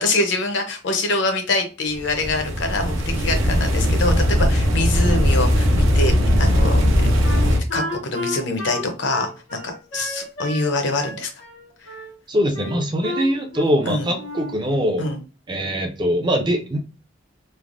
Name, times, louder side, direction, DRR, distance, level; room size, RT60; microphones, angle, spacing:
voice 1, 0.0-7.1 7.4-11.3 13.9-14.1 15.0-15.2, left 2 dB, 65° left, 5 dB, 0.6 m, -25 dB
sound 1, 2.1-7.6, equal, 80° right, 0.7 m, -18 dB
Wind instrument woodwind instrument, 7.2-10.7 11.0-12.1 12.5-13.8 14.1-14.6, left 1 dB, 90° left, 1.4 m, -32 dB
voice 2, 12.3-15.1 15.5-16.8, equal, 25° right, 4 dB, 0.4 m, -22 dB
3.2 x 2.0 x 2.5 m, 0.34 s
head